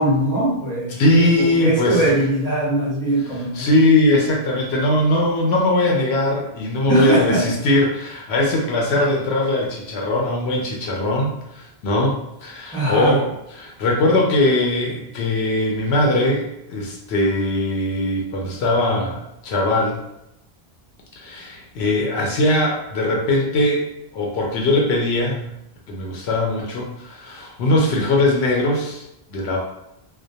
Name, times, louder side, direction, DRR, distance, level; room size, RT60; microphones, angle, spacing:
voice 1, 0.0-3.7 6.9-7.5 8.9-9.1 12.7-13.2, right 1 dB, 5° left, -6 dB, 0.7 m, -21 dB
voice 2, 1.0-2.1 3.5-13.3 13.5-20.0 21.2-23.9 24.1-25.4 25.9-29.0 29.3-29.6, left 1 dB, 75° left, -1 dB, 0.8 m, -20 dB
2.2 x 2.1 x 2.6 m, 0.84 s
omnidirectional pair, 1.1 m